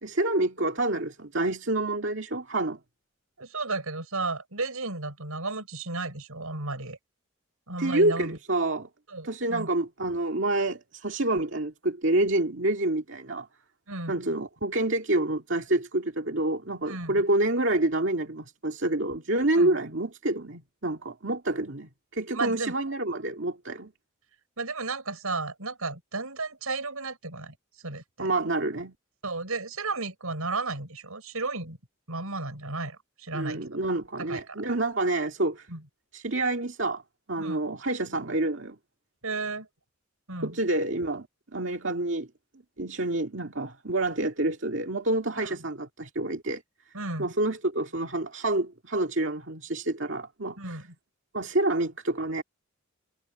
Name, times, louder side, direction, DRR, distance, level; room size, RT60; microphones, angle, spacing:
voice 1, 0.0-2.8 7.8-8.9 9.2-13.5 14.1-23.9 28.2-28.9 33.3-35.7 36.1-37.0 37.3-38.8 40.4-41.3 41.5-42.3 42.8-46.6 47.2-50.8 51.3-52.4, right 2 dB, 55° right, 2.3 m, -28 dB
voice 2, 3.4-7.0 7.7-8.4 9.1-9.7 13.9-14.1 16.9-17.1 19.6-19.7 22.3-22.7 24.6-27.5 27.8-28.3 29.2-31.8 32.1-33.7 34.2-34.6 35.7-35.8 37.4-37.6 39.2-39.7 40.3-40.6 45.3-45.6 46.9-47.3 50.6-50.9, right 3 dB, 85° right, 6.7 m, -33 dB
head